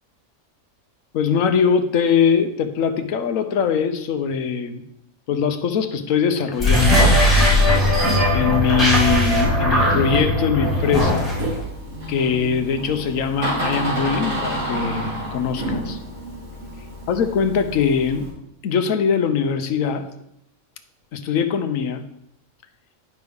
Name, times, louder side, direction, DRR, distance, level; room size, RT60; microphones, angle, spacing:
voice 1, 1.1-4.9 5.3-7.1 8.3-11.3 12.1-16.0 17.1-18.3 18.6-20.1 21.1-22.0, left 6 dB, 75° left, 8 dB, 1.1 m, -22 dB
sound 1, 6.5-11.6, left 1 dB, ahead, 3.3 m, -18 dB
Door, 10.6-18.3, equal, 80° right, 2.9 m, -30 dB
9.4 x 5.7 x 3.5 m, 0.79 s
omnidirectional pair, 1.4 m